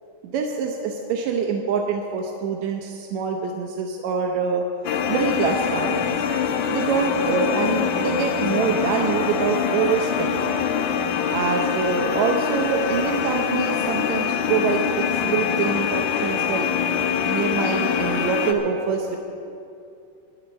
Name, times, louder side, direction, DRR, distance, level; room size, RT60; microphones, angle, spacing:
voice 1, 0.3-4.7 5.1-6.2 6.7-10.6 11.3-16.7 17.2-19.2, right 5 dB, 70° right, 1 dB, 1.9 m, -25 dB
sound 1, 4.8-18.5, left 7 dB, 70° left, 2.0 m, -24 dB
22.0 x 11.0 x 4.2 m, 2.6 s
omnidirectional pair, 3.9 m